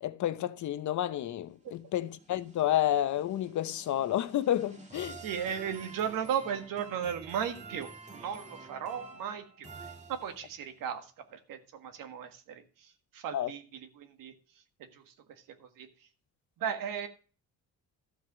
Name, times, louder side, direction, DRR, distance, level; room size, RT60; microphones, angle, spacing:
voice 1, 0.0-5.2 13.3-13.5, left 12 dB, 60° left, 0.8 m, -30 dB
sound 1, 1.7-10.7, right 4 dB, 20° right, 1.7 m, -49 dB
voice 2, 5.2-9.7 10.1-14.3 14.9-15.1 15.6-15.9 16.6-17.1, right 8 dB, 80° right, 1.7 m, -36 dB
12.5 x 4.7 x 7.4 m
cardioid pair, 120°, 33 cm